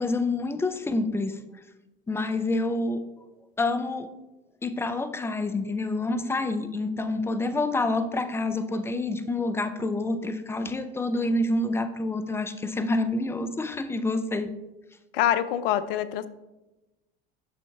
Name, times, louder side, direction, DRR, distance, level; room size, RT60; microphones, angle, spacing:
voice 1, 0.0-1.4 2.1-3.1 3.6-4.1 4.6-14.5, left 2 dB, 10° left, 10 dB, 0.4 m, -27 dB
voice 2, 15.1-16.3, left 11 dB, 65° left, 14 dB, 0.5 m, -25 dB
9.4 x 6.2 x 2.3 m, 1.0 s
hypercardioid pair, 75°, 29 cm